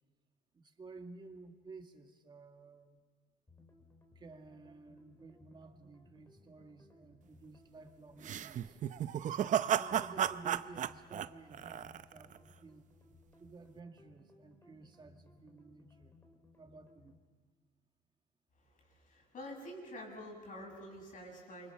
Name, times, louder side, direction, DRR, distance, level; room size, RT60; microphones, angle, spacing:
voice 1, 0.5-3.0 4.2-8.8 9.8-12.9 13.4-16.1 16.6-17.2, right 3 dB, 25° right, 5 dB, 2.0 m, -53 dB
sound 1, 3.5-17.2, left 2 dB, 15° left, 3.2 m, -63 dB
sound 2, 8.2-12.4, right 10 dB, 45° right, 0.7 m, -34 dB
voice 2, 18.9-21.7, equal, 50° left, 1 dB, 7.5 m, -47 dB
28.5 x 24.0 x 5.8 m, 1.5 s
cardioid pair, 110°, 17 cm